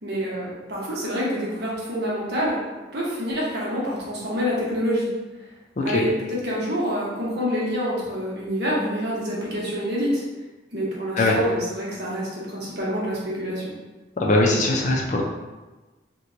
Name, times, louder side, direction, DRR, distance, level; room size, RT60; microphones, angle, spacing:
voice 1, 0.0-2.6 2.9-5.1 5.8-10.2 10.7-13.7, equal, 60° right, -5 dB, 1.0 m, -27 dB
voice 2, 14.2-15.2, left 2 dB, 40° left, -1 dB, 0.4 m, -20 dB
2.9 x 2.2 x 3.8 m, 1.2 s
head